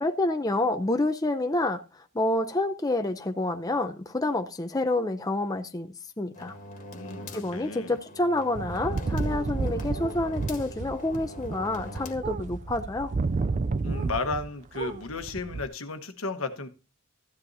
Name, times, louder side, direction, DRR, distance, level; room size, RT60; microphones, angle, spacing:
voice 1, 0.0-6.6 7.3-13.1, left 2 dB, 15° left, 0.6 m, -28 dB
sound 1, 6.3-12.1, left 1 dB, 35° left, 1.7 m, -43 dB
voice 2, 6.9-7.9 13.8-16.7, left 3 dB, 70° left, 1.2 m, -34 dB
sound 2, 8.6-14.5 14.7-15.7, right 3 dB, 35° right, 0.4 m, -31 dB
14.0 x 11.0 x 2.7 m
head